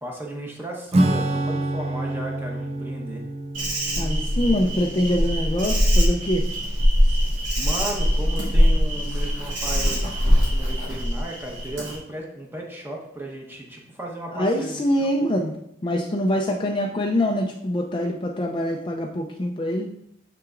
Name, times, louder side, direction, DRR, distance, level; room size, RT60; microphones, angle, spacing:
voice 1, 0.0-3.2 7.6-15.1, right 1 dB, 10° right, -1 dB, 1.0 m, -35 dB
Acoustic guitar / Strum, 0.9-6.9, right 1 dB, 35° right, 0.4 m, -28 dB
Insect, 3.5-12.0, equal, 85° right, 2.2 m, -22 dB
voice 2, 4.0-6.4 14.4-15.5 15.8-19.9, left 1 dB, 25° left, 2 dB, 0.4 m, -24 dB
6.8 x 5.7 x 2.5 m, 0.76 s
head